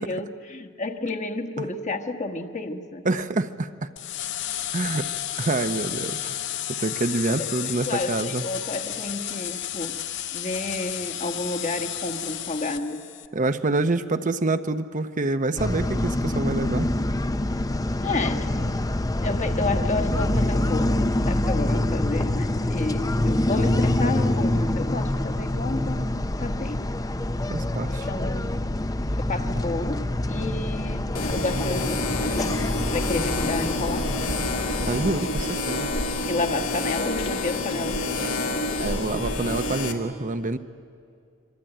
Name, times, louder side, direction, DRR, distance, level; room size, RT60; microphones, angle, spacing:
voice 1, 0.0-3.1 7.6-10.0 10.3-13.0 18.0-18.8 19.2-26.9 28.1-28.7 29.2-34.1 36.3-38.4, left 2 dB, 35° left, 6 dB, 1.4 m, -31 dB
voice 2, 3.0-3.9 4.7-5.1 5.4-6.4 6.7-8.5 13.3-16.9 27.5-28.1 34.9-35.9 38.2-38.5 38.8-40.6, right 2 dB, 40° right, 9 dB, 0.8 m, -27 dB
sound 1, 4.0-13.3, left 12 dB, 60° left, 0.8 m, -32 dB
sound 2, 15.6-35.2, left 1 dB, 20° left, 0.6 m, -26 dB
sound 3, 31.1-39.9, left 2 dB, 80° left, 2.4 m, -28 dB
26.0 x 24.0 x 9.0 m, 2.4 s
head